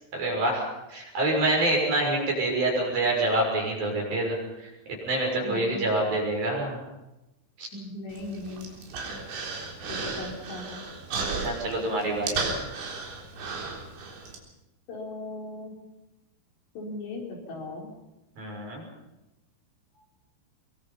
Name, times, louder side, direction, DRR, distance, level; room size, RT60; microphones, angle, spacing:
voice 1, 0.1-4.7 5.0-6.8 7.6-7.7 11.4-12.4 18.4-18.8, right 2 dB, 50° right, -1 dB, 8.1 m, -26 dB
voice 2, 5.4-5.9 7.7-8.7 9.9-10.8 14.9-15.7 16.8-17.9, left 2 dB, 70° left, 0 dB, 6.4 m, -38 dB
Human voice, 8.1-14.4, right 4 dB, 75° right, 6.1 m, -34 dB
23.5 x 23.5 x 5.8 m, 0.96 s
omnidirectional pair, 5.3 m